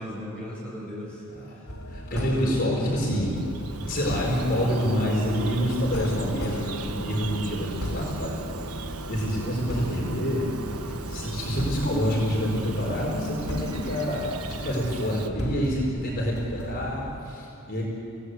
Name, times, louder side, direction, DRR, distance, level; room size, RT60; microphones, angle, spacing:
voice 1, 0.0-1.2 1.5-1.6 2.1-2.9, equal, 5° left, -5 dB, 7.5 m, -37 dB
voice 2, 1.3-1.6 1.9-3.4 3.7-8.4 8.8-10.5 11.1-17.8, equal, 45° left, -3 dB, 4.7 m, -27 dB
sound 1, 1.7-17.2, equal, 80° left, 3.1 m, -36 dB
Bird vocalization bird call bird song, 3.2-15.3, right 3 dB, 85° right, 1.2 m, -38 dB
28.0 x 17.5 x 8.1 m, 2.9 s
head